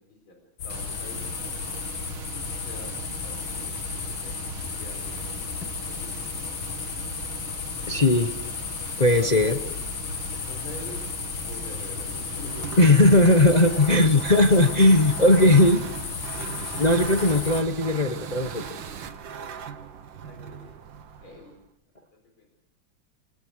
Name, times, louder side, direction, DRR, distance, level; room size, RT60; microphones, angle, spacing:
voice 1, 0.0-1.5 2.6-2.9 3.2-4.3 4.8-5.5 5.9-6.8 9.2-9.7 10.5-11.0 11.5-13.4 20.1-20.8 21.1-21.6 22.4-22.5, left 2 dB, 90° left, 2 dB, 5.0 m, -45 dB
sound 1, 0.6-17.6, left 8 dB, 65° left, 1.8 m, -34 dB
Water, 0.7-19.1, right 7 dB, 85° right, 2.1 m, -40 dB
voice 2, 7.9-8.3 9.0-9.6 12.8-15.8 16.8-18.7, left 2 dB, 30° left, 7 dB, 0.9 m, -18 dB
sound 2, 12.3-21.6, right 7 dB, 70° right, 1.9 m, -39 dB
29.0 x 19.0 x 6.4 m, 0.76 s
omnidirectional pair, 2.2 m